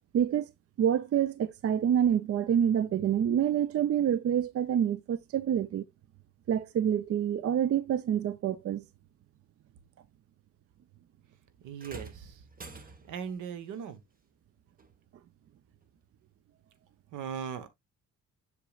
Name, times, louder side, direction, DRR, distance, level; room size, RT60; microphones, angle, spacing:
voice 1, 0.1-0.5 0.8-5.8 6.5-8.8, right 9 dB, 50° right, 0.6 m, -27 dB
voice 2, 11.6-12.4 13.1-14.0 17.1-17.7, right 7 dB, 85° right, 1.3 m, -38 dB
sound 1, 11.8-13.3 14.8-14.9 15.8-15.9, right 3 dB, 30° right, 1.3 m, -47 dB
7.3 x 6.6 x 2.4 m
cardioid pair, 90°, 30 cm